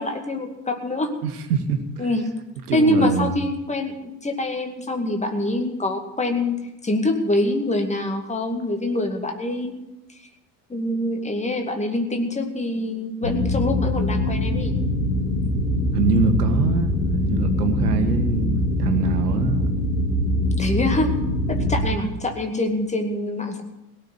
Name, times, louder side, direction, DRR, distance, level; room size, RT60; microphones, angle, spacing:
voice 1, 0.0-1.1 2.0-2.2 2.7-3.9 4.2-6.6 6.8-9.8 10.7-14.8 20.6-21.1 21.5-23.6, left 1 dB, 15° left, 4 dB, 2.2 m, -25 dB
voice 2, 1.2-2.1 2.7-3.4 15.9-19.7, right 4 dB, 70° right, 7 dB, 1.8 m, -24 dB
sound 1, 13.2-21.8, left 1 dB, 75° left, 2.8 m, -23 dB
17.5 x 6.6 x 9.7 m, 0.93 s
figure-of-eight pair, 65°, 47 cm